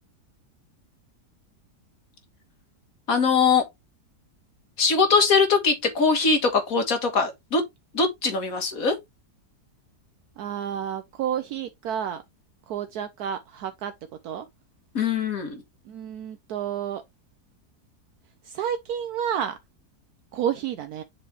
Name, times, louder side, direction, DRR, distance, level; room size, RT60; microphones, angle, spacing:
voice 1, 3.1-3.6 4.8-7.6 7.9-9.0 14.9-15.6, left 4 dB, 60° left, 2.0 m, -21 dB
voice 2, 10.4-12.2 12.7-13.9 14.2-14.5 15.9-17.0 18.4-19.6 20.3-21.0, right 9 dB, 75° right, 1.1 m, -30 dB
7.5 x 4.2 x 3.2 m
omnidirectional pair, 1.7 m